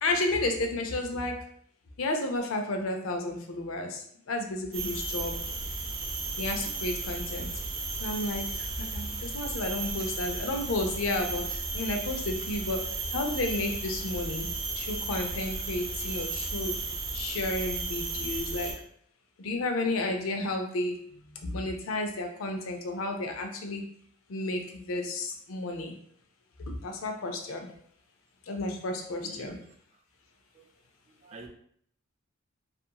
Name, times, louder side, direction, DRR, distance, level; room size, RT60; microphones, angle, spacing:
voice 1, 0.0-1.4 2.0-5.3 6.4-7.5 8.0-12.8 13.1-14.5 14.7-16.7 17.1-18.7 19.4-21.0 21.4-23.8 24.3-25.9 26.6-27.7 28.5-29.6, left 2 dB, 75° left, 4 dB, 0.5 m, -32 dB
sound 1, 4.7-18.7, right 3 dB, 85° right, 0.6 m, -34 dB
voice 2, 29.2-29.5 30.5-30.7 31.2-31.5, right 2 dB, 30° right, 3 dB, 0.4 m, -45 dB
2.8 x 2.5 x 2.2 m, 0.64 s
head